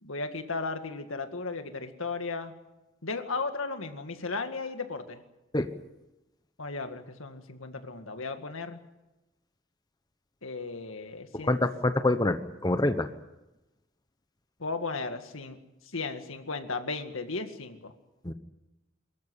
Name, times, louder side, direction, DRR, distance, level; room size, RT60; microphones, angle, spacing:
voice 1, 0.0-2.5 3.0-5.2 6.6-8.8 10.4-11.6 14.6-15.6 15.9-17.9, left 3 dB, 80° left, 7 dB, 2.0 m, -35 dB
voice 2, 11.3-13.1 18.2-18.3, left 2 dB, 20° left, 9 dB, 1.0 m, -26 dB
24.5 x 14.0 x 9.9 m, 0.99 s
head